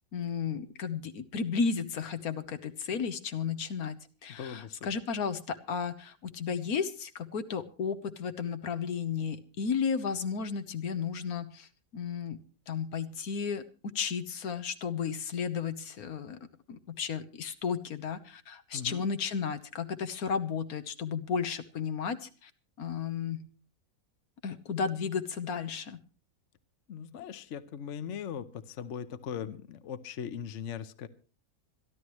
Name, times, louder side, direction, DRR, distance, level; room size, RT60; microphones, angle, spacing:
voice 1, 0.1-12.4 12.7-13.6 13.9-16.4 16.7-22.5 22.8-23.5 24.4-26.0, left 6 dB, 80° left, 11 dB, 1.5 m, -33 dB
voice 2, 4.4-4.9 18.7-19.0 26.9-31.1, left 8 dB, 60° left, 12 dB, 1.1 m, -39 dB
26.0 x 11.5 x 3.1 m, 0.36 s
omnidirectional pair, 1.6 m